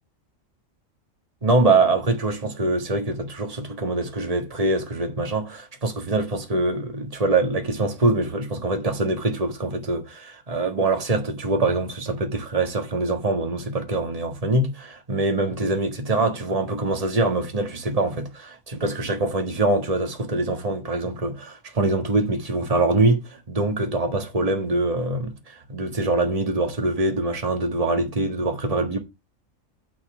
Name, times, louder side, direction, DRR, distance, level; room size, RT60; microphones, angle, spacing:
voice 1, 1.4-29.0, right 2 dB, 30° right, 1.6 m, -24 dB
9.2 x 4.2 x 7.0 m
omnidirectional pair, 1.4 m